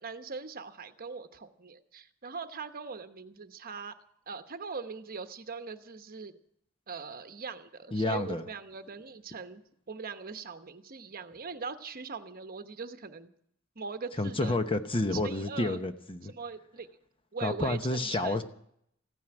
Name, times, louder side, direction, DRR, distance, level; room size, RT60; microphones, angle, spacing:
voice 1, 0.0-4.0 4.3-6.3 6.9-13.3 13.7-14.6 15.1-15.8 16.2-16.9 17.3-18.4, right 5 dB, 45° right, 9 dB, 1.0 m, -41 dB
voice 2, 7.9-8.4 14.2-16.3 17.4-18.4, left 2 dB, 25° left, 9 dB, 0.9 m, -29 dB
15.5 x 9.5 x 8.8 m, 0.70 s
head